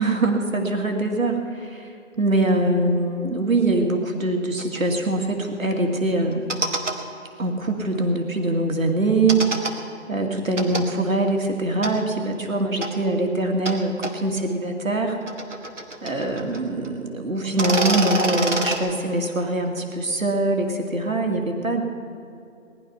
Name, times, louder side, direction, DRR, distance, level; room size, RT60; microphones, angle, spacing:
voice 1, 0.0-6.4 7.4-9.4 10.1-15.2 16.0-21.8, right 2 dB, 85° right, 3 dB, 2.3 m, -23 dB
sound 1, 4.6-4.8 6.3-6.9 9.3-9.7 10.6-10.8 11.8-11.9 12.8-12.9 13.6-13.8 14.0-14.1 15.0-16.6 16.8-16.9 17.4-18.8, right 2 dB, 65° right, 2.1 m, -26 dB
19.5 x 11.5 x 5.7 m, 2.6 s
figure-of-eight pair, 175°, 39 cm